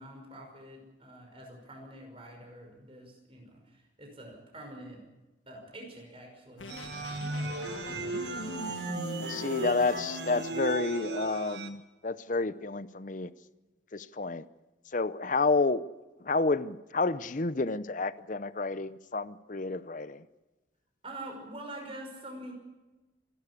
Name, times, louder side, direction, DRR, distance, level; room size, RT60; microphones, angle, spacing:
voice 1, 0.0-5.1 5.5-8.5 21.0-22.5, right 1 dB, 30° right, 5.6 m, -46 dB
sound 1, 6.6-10.8, left 2 dB, 90° left, 1.2 m, -42 dB
sound 2, 6.7-11.7, right 2 dB, 60° right, 1.6 m, -36 dB
voice 2, 9.3-13.3 13.9-14.5 14.9-15.8 16.2-20.2, left 3 dB, 40° left, 0.7 m, -30 dB
27.0 x 12.0 x 8.4 m
head